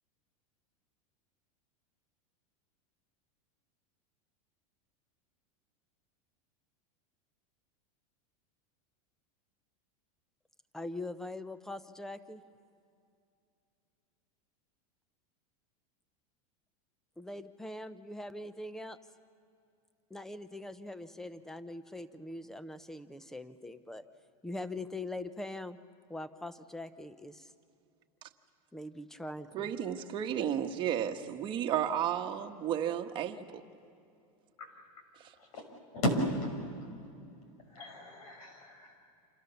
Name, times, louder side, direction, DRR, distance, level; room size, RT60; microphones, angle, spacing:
voice 1, 10.7-12.4 17.2-19.0 20.1-24.0 24.4-25.8 26.1-27.5 28.7-29.7, left 2 dB, ahead, 0.7 m, -42 dB
voice 2, 29.5-33.6 35.2-35.3, right 9 dB, 25° right, 1.3 m, -33 dB
voice 3, 37.7-39.0, left 1 dB, 85° left, 6.0 m, -35 dB
28.5 x 27.5 x 7.0 m
supercardioid pair, 155°, 18 cm